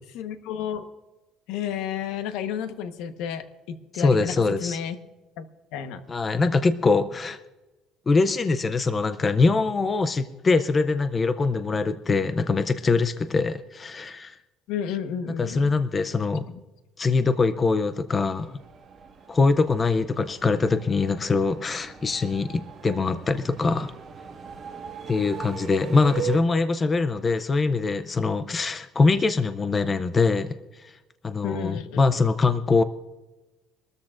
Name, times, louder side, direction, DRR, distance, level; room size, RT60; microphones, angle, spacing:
voice 1, 0.1-0.9 1.5-5.0 5.4-5.5 5.7-6.0 14.7-15.7 29.1-29.2 31.4-32.2, left 8 dB, 75° left, 9 dB, 1.1 m, -32 dB
voice 2, 3.9-4.8 6.1-7.4 8.1-14.4 15.4-16.5 17.0-18.6 19.3-23.9 25.1-30.5 31.2-32.8, left 4 dB, 20° left, 11 dB, 0.5 m, -23 dB
sound 1, 18.2-26.4, right 8 dB, 30° right, 1.8 m, -39 dB
24.5 x 13.5 x 2.5 m, 1.1 s
cardioid pair, 165°, 0 cm